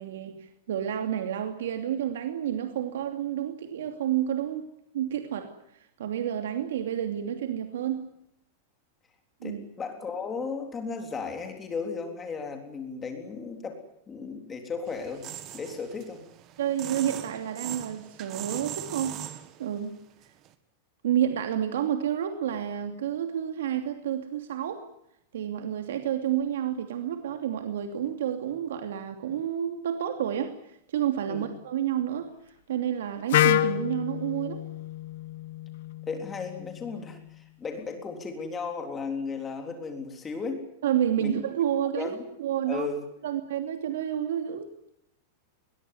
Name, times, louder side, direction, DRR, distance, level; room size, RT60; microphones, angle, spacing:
voice 1, 0.0-4.7 4.9-8.1 9.4-9.6 16.6-19.2 19.6-20.0 21.0-24.8 25.3-34.6 40.8-42.9 43.2-44.7, right 10 dB, 90° right, 6 dB, 2.7 m, -30 dB
voice 2, 9.4-13.8 14.1-15.2 15.5-16.2 31.3-31.5 36.1-40.6 41.2-41.4 42.0-42.2 42.7-43.1, left 5 dB, 15° left, 5 dB, 3.7 m, -35 dB
sound 1, 14.9-19.8 20.2-20.5, right 12 dB, 30° right, 1.9 m, -41 dB
Wind instrument woodwind instrument, 33.3-37.2, left 14 dB, 60° left, 1.5 m, -28 dB
21.5 x 21.5 x 9.7 m, 0.77 s
supercardioid pair, 170°, 0 cm